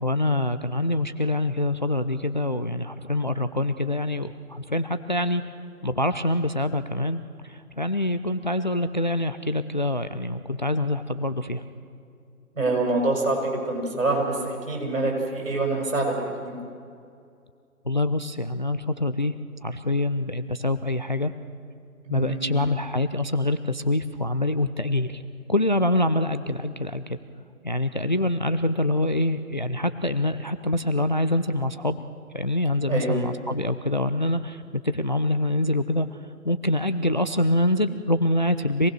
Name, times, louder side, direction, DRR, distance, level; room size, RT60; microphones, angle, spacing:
voice 1, 0.0-5.4 5.8-7.2 7.5-11.6 17.9-19.3 19.6-21.3 22.1-25.2 25.5-27.2 27.6-32.0 32.3-36.1 36.4-38.9, left 1 dB, 35° left, 11 dB, 0.5 m, -25 dB
voice 2, 12.5-16.5 22.0-22.6 32.9-33.2, right 2 dB, 60° right, 0 dB, 7.4 m, -26 dB
26.5 x 19.0 x 6.4 m, 2.3 s
figure-of-eight pair, 145°, 44 cm